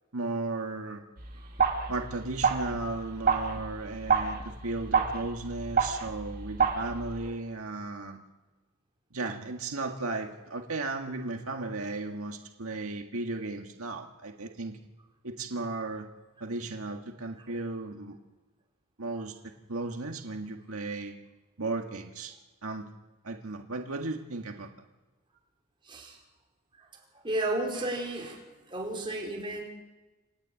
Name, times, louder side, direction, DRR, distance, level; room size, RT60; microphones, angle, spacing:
voice 1, 0.1-1.0 1.9-8.2 9.1-14.8 15.2-16.1 16.4-18.2 19.0-21.1 21.6-22.4 22.6-22.9 23.2-24.7, right 3 dB, 85° right, 3 dB, 1.8 m, -35 dB
sound 1, 1.2-7.3, right 5 dB, 40° right, 2.2 m, -29 dB
voice 2, 27.2-28.4 28.7-29.6, right 1 dB, 25° right, -2 dB, 4.7 m, -32 dB
28.5 x 10.0 x 8.9 m, 1.2 s
head